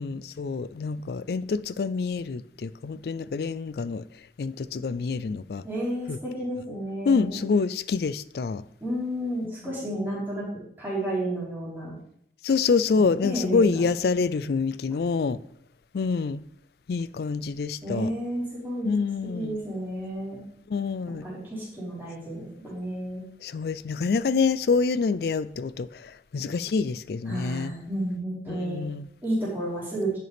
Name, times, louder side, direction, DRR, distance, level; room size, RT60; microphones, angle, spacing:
voice 1, 0.0-4.0 4.4-5.6 6.1-6.2 7.1-8.6 12.4-15.4 15.9-16.4 16.9-18.1 18.8-19.6 20.7-21.3 23.4-27.7 28.5-29.1, left 4 dB, 60° left, 16 dB, 0.3 m, -26 dB
voice 2, 5.6-7.5 8.8-10.5 10.8-11.9 12.9-13.8 17.8-18.9 19.2-20.4 21.1-23.2 27.3-28.8 29.2-30.2, right 1 dB, 10° right, -9 dB, 4.0 m, -31 dB
10.5 x 6.6 x 3.4 m, 0.71 s
head